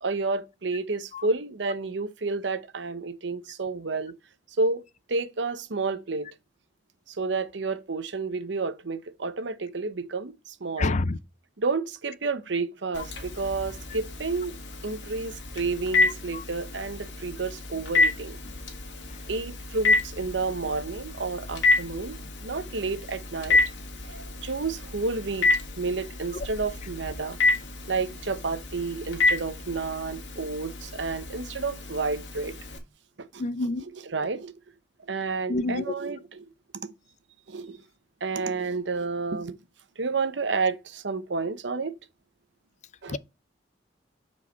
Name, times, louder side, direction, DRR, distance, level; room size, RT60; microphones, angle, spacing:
voice 1, 0.0-4.1 4.6-4.8 5.1-6.3 7.1-10.9 11.6-14.6 14.8-18.4 19.3-23.6 24.0-25.5 25.8-27.4 27.9-32.6 33.2-33.4 34.1-34.5 35.0-36.5 36.8-36.9 37.5-37.8 38.2-39.6 40.0-41.9 43.0-43.2, right 3 dB, 70° right, 0.8 m, -30 dB
voice 2, 10.8-11.2 16.3-16.4 26.3-26.5 33.4-33.8 35.5-35.9 43.1-43.2, left 2 dB, 40° left, 0.4 m, -28 dB
Telephone, 12.9-32.8, left 3 dB, 90° left, 1.9 m, -29 dB
6.8 x 4.8 x 4.1 m
head